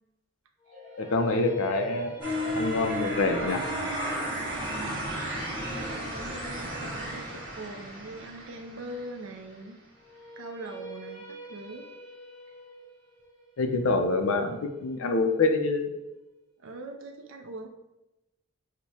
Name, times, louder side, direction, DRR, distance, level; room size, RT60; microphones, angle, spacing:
sound 1, 0.6-6.7 10.0-16.0, right 2 dB, 15° left, 0.6 m, -47 dB
sound 2, 0.7-5.8, equal, 40° right, 1.4 m, -48 dB
voice 1, 1.0-2.1 2.6-3.6 13.6-15.9, left 3 dB, 65° left, 6 dB, 0.5 m, -26 dB
sound 3, 2.2-9.1, equal, 20° right, 1.3 m, -33 dB
voice 2, 4.6-5.1 5.8-9.8 10.4-11.9 16.6-17.7, right 2 dB, 55° right, 4 dB, 0.5 m, -42 dB
6.2 x 2.1 x 2.7 m, 0.95 s
head